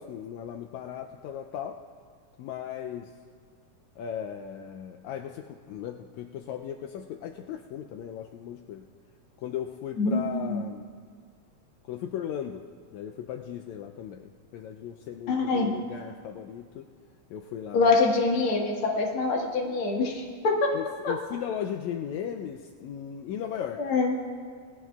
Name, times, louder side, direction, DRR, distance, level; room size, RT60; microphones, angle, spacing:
voice 1, 0.0-1.8 2.4-3.1 4.0-8.9 9.4-10.9 11.9-12.6 12.9-16.9 17.3-18.0 20.7-23.8, left 9 dB, 80° left, 4 dB, 1.7 m, -37 dB
voice 2, 10.0-10.6 15.3-15.7 17.7-20.8 21.0-21.2 23.8-24.2, left 3 dB, 50° left, -1 dB, 2.0 m, -25 dB
20.0 x 15.0 x 2.4 m, 2.1 s
omnidirectional pair, 3.6 m